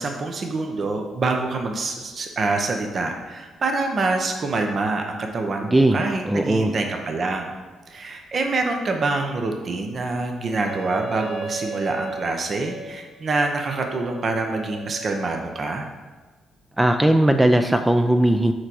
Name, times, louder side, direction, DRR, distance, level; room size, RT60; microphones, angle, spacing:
voice 1, 0.0-7.5 7.9-15.9, right 3 dB, 45° right, 3 dB, 0.9 m, -26 dB
voice 2, 5.6-6.7 16.8-18.5, right 1 dB, 10° right, 6 dB, 0.4 m, -18 dB
Wind instrument woodwind instrument, 10.5-15.6, right 3 dB, 90° right, 2.4 m, -36 dB
6.4 x 4.9 x 6.1 m, 1.3 s
cardioid pair, 90°, 0 cm